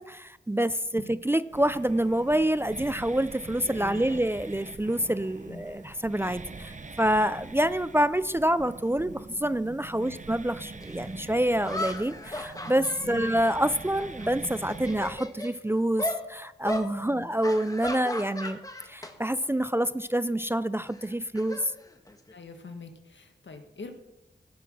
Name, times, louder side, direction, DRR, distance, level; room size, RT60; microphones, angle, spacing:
voice 1, 0.0-18.6 18.9-21.7, right 1 dB, 10° right, 15 dB, 0.4 m, -27 dB
sound 1, 1.5-15.2, right 3 dB, 40° right, 0.8 m, -44 dB
voice 2, 3.7-4.2 5.5-5.6 10.0-10.2 13.0-13.2 17.0-17.3 22.3-23.9, left 4 dB, 75° left, 5 dB, 1.5 m, -44 dB
sound 2, 10.8-10.9 11.6-14.3 14.6-15.5 16.0-16.2 16.6-16.9 17.4-19.1 19.4-19.7 20.9-22.3, left 1 dB, 20° left, 1.4 m, -36 dB
16.5 x 5.7 x 6.1 m, 0.94 s
wide cardioid pair, 60°, 19 cm